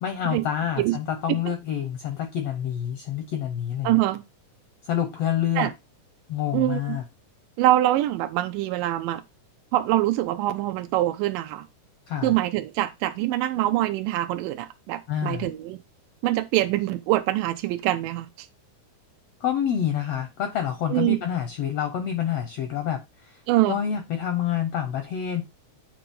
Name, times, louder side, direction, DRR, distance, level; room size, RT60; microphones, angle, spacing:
voice 1, 0.0-4.0 4.9-5.7 6.3-7.0 12.1-12.3 15.1-15.5 19.4-23.4 23.7-25.4, left 9 dB, 75° left, 1.4 m, -27 dB
voice 2, 3.8-4.2 5.6-5.7 6.5-7.0 7.6-9.2 9.7-11.7 12.2-15.8 16.2-18.5 20.9-21.2 23.5-23.8, right 15 dB, 85° right, 2.2 m, -24 dB
8.7 x 3.1 x 5.2 m
omnidirectional pair, 3.8 m